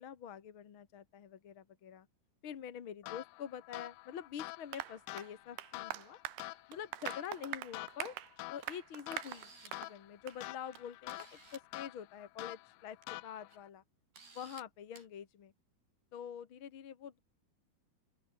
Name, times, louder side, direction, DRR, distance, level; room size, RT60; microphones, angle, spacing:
voice 1, 0.0-2.1 2.4-6.2 6.7-8.1 8.5-13.8 14.3-15.5 16.1-17.2, left 8 dB, 50° left, 1.6 m, -46 dB
sound 1, 3.0-13.7, left 20 dB, 80° left, 2.0 m, -48 dB
Applause, 4.7-10.0 10.3-10.4 10.8-10.9 11.2-11.3, right 15 dB, 90° right, 3.2 m, -44 dB
Camera, 8.6-8.7 9.1-9.9 10.7-10.8 11.1-11.7 12.8-13.0 13.5-13.6 14.1-14.6 14.9-15.1, right 4 dB, 70° right, 9.6 m, -56 dB
open air
omnidirectional pair, 4.4 m